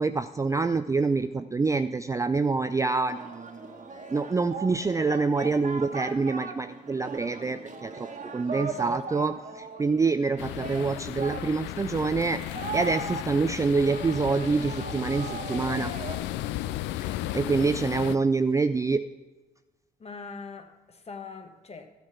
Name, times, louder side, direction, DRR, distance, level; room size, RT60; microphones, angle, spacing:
voice 1, 0.0-3.6 4.1-8.1 8.3-9.3 9.8-12.4 12.7-15.9 17.3-19.0, right 4 dB, 15° right, 10 dB, 0.4 m, -26 dB
Singing, 3.1-16.2, right 4 dB, 35° right, 1.4 m, -39 dB
voice 2, 8.5-9.3 20.0-21.9, left 4 dB, 30° left, 7 dB, 1.3 m, -43 dB
sound 1, 10.4-18.2, left 14 dB, 60° left, 0.5 m, -35 dB
12.5 x 5.7 x 6.0 m, 1.2 s
figure-of-eight pair, 45°, 21 cm